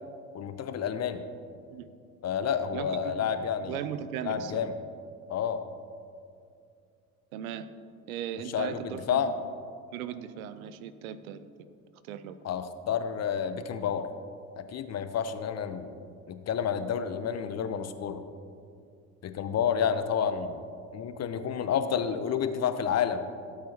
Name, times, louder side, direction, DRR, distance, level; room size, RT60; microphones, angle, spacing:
voice 1, 0.3-1.2 2.2-3.7 4.2-4.7 5.3-5.6 8.5-9.3 12.4-14.1 14.6-16.0 16.3-18.2 19.2-20.6 20.9-23.3, left 8 dB, 35° left, 10 dB, 0.8 m, -30 dB
voice 2, 2.7-3.3 3.6-4.7 7.3-7.7 8.1-9.3 9.9-11.5 12.0-12.4, right 9 dB, 70° right, 13 dB, 0.7 m, -37 dB
16.5 x 8.7 x 2.9 m, 2.3 s
hypercardioid pair, 60°, 43 cm